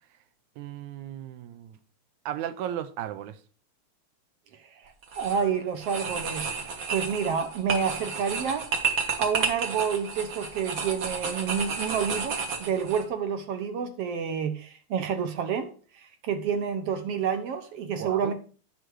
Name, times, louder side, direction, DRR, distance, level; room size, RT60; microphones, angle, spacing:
voice 1, 0.6-1.8 2.3-3.4 18.0-18.3, right 11 dB, 90° right, 2.3 m, -35 dB
voice 2, 4.8-6.5 6.9-8.7 9.2-18.3, right 7 dB, 70° right, 1.6 m, -29 dB
sound 1, 5.0-5.4 5.8-13.0, right 5 dB, 50° right, 2.1 m, -31 dB
10.5 x 6.4 x 4.7 m
omnidirectional pair, 3.3 m